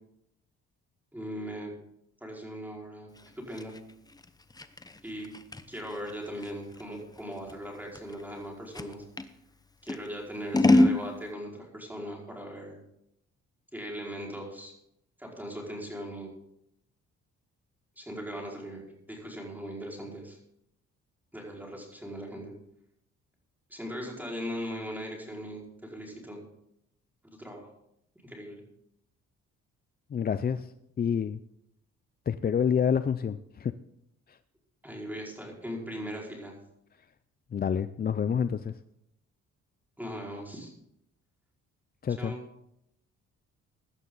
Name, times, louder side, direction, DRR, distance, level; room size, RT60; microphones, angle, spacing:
voice 1, 1.1-1.7 2.2-3.1 3.4-3.7 5.0-5.3 5.7-9.0 9.8-12.7 13.7-14.7 15.2-16.3 18.0-20.4 21.3-22.5 23.7-26.4 27.2-27.7 28.2-28.6 34.8-36.5 40.0-40.7 42.2-42.4, equal, 5° right, -2 dB, 5.0 m, -39 dB
Scissors, 3.2-9.3 9.9-11.0, left 2 dB, 15° left, 0.9 m, -27 dB
voice 2, 30.1-30.7 31.0-31.4 32.3-33.7 34.3-34.4 37.5-38.8 42.0-42.3, left 7 dB, 30° left, 12 dB, 0.5 m, -28 dB
16.5 x 11.5 x 4.0 m, 0.78 s
cardioid pair, 90°, 30 cm